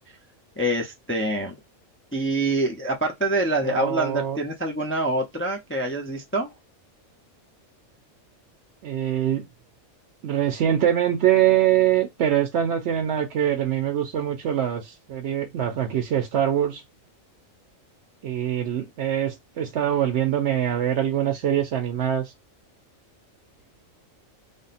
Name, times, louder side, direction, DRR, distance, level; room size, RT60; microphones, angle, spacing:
voice 1, 0.6-1.5 2.1-6.5, right 1 dB, 20° left, 0.4 m, -25 dB
voice 2, 3.5-4.4 8.8-9.4 10.2-16.8 18.2-22.3, right 10 dB, 65° right, 0.8 m, -23 dB
3.4 x 2.2 x 4.1 m
omnidirectional pair, 1.4 m